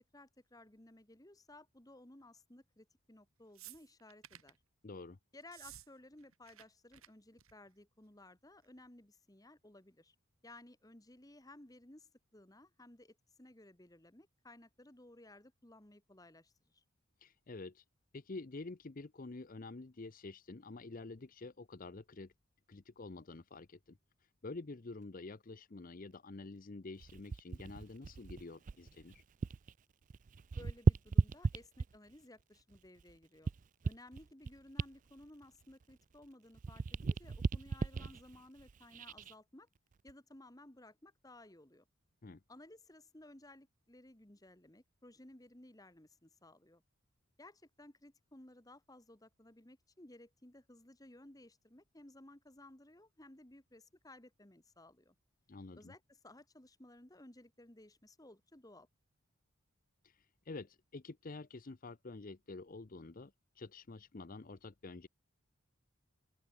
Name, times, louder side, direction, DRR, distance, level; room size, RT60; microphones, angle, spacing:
voice 1, 0.0-4.6 5.3-10.1 10.4-16.8 30.5-33.5 33.8-39.7 40.0-41.8 42.5-46.8 47.4-55.1 55.7-58.9, left 1 dB, 15° left, 1.4 m, -58 dB
sound 1, 3.6-4.6 5.4-5.9 6.1-6.7 6.9-7.1 7.4-7.7 8.6-8.7, right 12 dB, 80° right, 4.4 m, -54 dB
voice 2, 4.8-5.2 17.2-17.8 18.1-22.3 22.7-29.2 42.2-42.4 55.5-55.9 60.0-65.1, left 3 dB, 40° left, 0.6 m, -48 dB
sound 2, 27.0-29.7 30.0-32.2 32.7-36.3 36.5-39.3 39.9-40.1, right 4 dB, 35° right, 0.3 m, -36 dB
open air
head